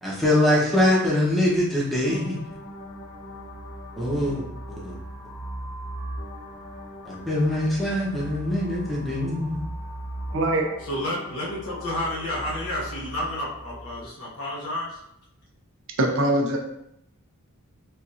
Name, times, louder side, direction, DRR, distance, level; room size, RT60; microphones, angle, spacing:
voice 1, 0.0-2.4 4.0-4.4 4.7-4.9 7.0-9.6, left 1 dB, ahead, -6 dB, 0.9 m, -23 dB
sound 1, 2.1-14.0, right 1 dB, 55° left, 0.8 m, -38 dB
voice 2, 10.3-10.7 16.0-16.6, right 1 dB, 65° right, 2 dB, 0.6 m, -22 dB
voice 3, 10.9-15.0, left 1 dB, 80° left, -6 dB, 1.0 m, -30 dB
4.3 x 2.6 x 2.5 m, 0.77 s
head